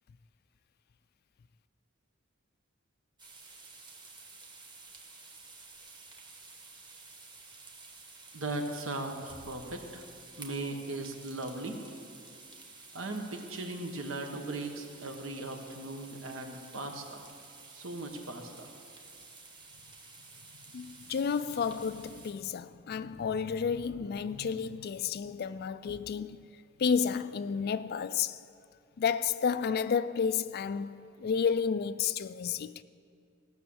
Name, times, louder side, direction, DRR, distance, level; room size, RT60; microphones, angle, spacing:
fry onions, 3.2-22.3, right 3 dB, 20° right, 1.3 m, -52 dB
voice 1, 8.3-10.0 10.4-11.8 12.9-17.3 17.7-18.7, right 2 dB, 70° right, 1.3 m, -38 dB
voice 2, 20.7-26.5 26.8-28.4 29.0-32.7, left 6 dB, 50° left, 0.3 m, -31 dB
16.5 x 6.3 x 7.2 m
head